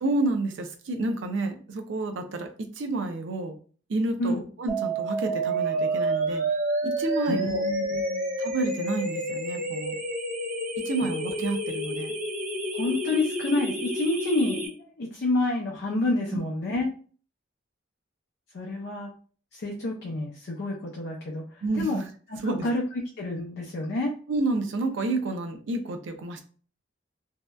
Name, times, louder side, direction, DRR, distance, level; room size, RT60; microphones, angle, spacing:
voice 1, 0.0-3.6 3.9-6.4 6.8-7.7 8.4-9.9 10.8-12.1 21.6-22.1 22.4-22.7 24.3-26.4, right 2 dB, 70° right, 6 dB, 0.4 m, -29 dB
sound 1, 4.7-14.7, right 1 dB, 40° right, 0.7 m, -29 dB
voice 2, 7.3-8.3 12.7-14.7 15.0-16.9 18.5-19.1 19.5-21.4 21.7-22.0 22.3-22.8 23.2-24.1, left 2 dB, 60° left, -2 dB, 0.5 m, -28 dB
2.7 x 2.1 x 2.2 m, 0.42 s
head